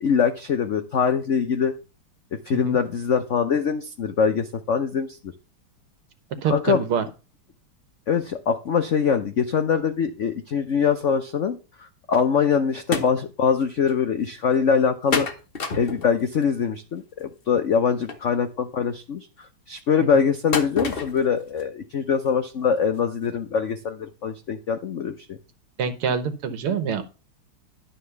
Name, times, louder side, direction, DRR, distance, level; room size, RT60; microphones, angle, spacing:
voice 1, 0.0-1.7 2.5-5.3 6.5-6.8 8.1-15.3 15.8-25.4, left 6 dB, 80° left, 7 dB, 0.6 m, -23 dB
voice 2, 6.4-7.1 25.8-27.0, right 6 dB, 90° right, 10 dB, 2.2 m, -25 dB
sound 1, 12.9-13.1 13.6-13.7 13.9-14.0 15.1-16.4 18.1-18.2 20.5-21.2 21.6-21.7 22.3-22.4 22.9-23.0 23.2-23.3, left 4 dB, 35° left, 1.0 m, -27 dB
11.5 x 4.3 x 6.9 m, 0.32 s
omnidirectional pair, 2.3 m